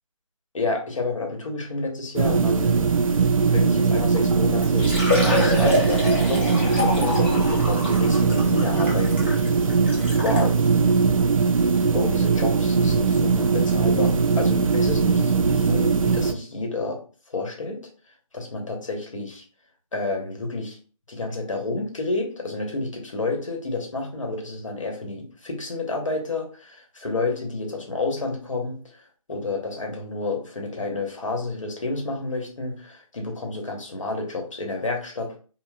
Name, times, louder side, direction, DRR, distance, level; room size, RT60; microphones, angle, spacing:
voice 1, 0.5-2.9 3.5-9.4 10.1-10.5 11.9-17.0 17.3-17.8 18.3-19.4 19.9-20.8 21.1-35.4, left 3 dB, 65° left, 2 dB, 1.0 m, -30 dB
sound 1, 2.2-16.3, right 5 dB, 70° right, 0.4 m, -20 dB
Liquid, 4.6-10.5 11.2-11.3 11.8-11.9 13.5-13.6 13.8-13.9, left 2 dB, 20° left, 0.7 m, -27 dB
3.9 x 2.1 x 2.2 m, 0.39 s
figure-of-eight pair, 175°, 18 cm